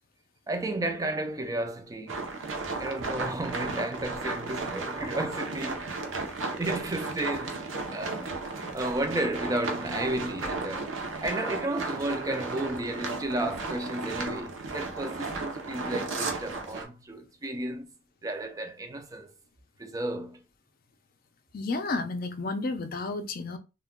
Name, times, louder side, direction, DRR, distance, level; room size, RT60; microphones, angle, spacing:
voice 1, 0.5-2.3 2.8-5.9 6.6-7.7 7.9-17.9 18.2-19.3 19.8-20.4, right 1 dB, 15° right, 0.3 m, -33 dB
sound 1, 2.1-16.8, right 3 dB, 70° right, 0.6 m, -34 dB
voice 2, 21.5-23.6, left 3 dB, 45° left, 0.4 m, -31 dB
2.3 x 2.1 x 3.5 m
head